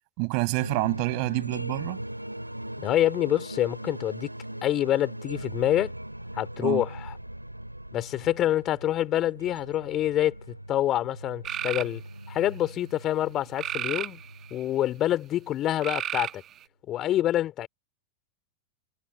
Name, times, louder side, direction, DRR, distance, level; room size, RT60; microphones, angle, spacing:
voice 1, 0.2-2.0 6.6-6.9, right 40 dB or more, 45° right, 6.3 m, -28 dB
sound 1, 0.6-15.7, right 1 dB, 90° right, 3.0 m, -40 dB
voice 2, 2.8-4.3 4.6-5.9 6.3-7.1 7.9-10.3 10.7-12.0 12.3-14.2 14.5-16.4 16.9-17.7, left 13 dB, 30° left, 3.9 m, -26 dB
sound 2, 11.4-11.9 13.6-14.6 15.8-16.6, right 11 dB, 30° right, 1.4 m, -32 dB
figure-of-eight pair, 90°, 0 cm